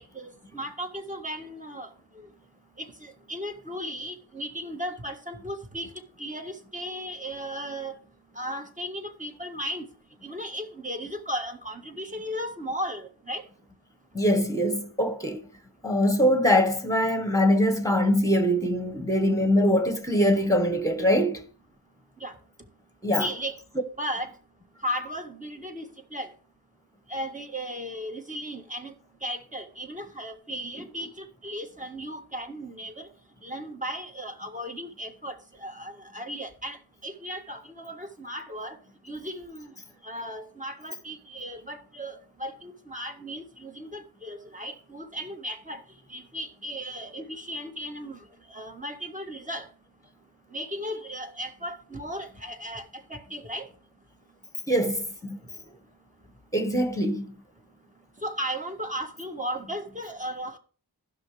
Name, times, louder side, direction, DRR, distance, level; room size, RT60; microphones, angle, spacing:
voice 1, 0.0-1.9 2.2-2.3 2.8-5.9 6.2-7.9 8.3-9.9 10.2-13.4 22.2-22.4 23.2-23.5 24.0-24.3 24.8-25.8 26.1-26.3 27.1-28.9 29.2-33.1 33.4-36.8 37.0-38.8 39.1-39.7 40.0-45.8 46.1-48.2 48.5-49.6 50.5-53.7 58.2-60.6, equal, 20° right, 1.6 m, -36 dB
voice 2, 14.1-15.4 15.8-21.4 23.0-23.4 30.8-30.9 54.7-55.4 56.5-57.3, equal, 10° left, 1.6 m, -23 dB
15.5 x 5.9 x 3.4 m
wide cardioid pair, 55°, 39 cm